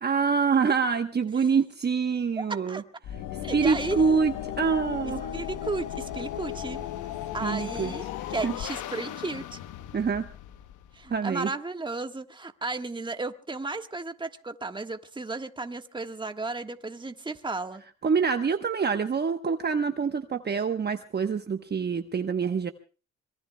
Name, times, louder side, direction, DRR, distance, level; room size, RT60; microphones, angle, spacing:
voice 1, 0.0-2.8 3.5-5.3 7.4-7.9 8.2-8.5 9.9-10.3 11.1-11.5 18.0-22.7, right 5 dB, 35° right, 7 dB, 1.0 m, -26 dB
voice 2, 2.4-2.8 3.4-4.0 5.3-6.8 7.3-9.4 10.9-17.8, right 3 dB, 15° right, 7 dB, 1.4 m, -34 dB
sound 1, 3.0-11.2, left 11 dB, 85° left, 1.0 m, -36 dB
26.0 x 22.5 x 2.2 m, 0.36 s
cardioid pair, 90°, 30 cm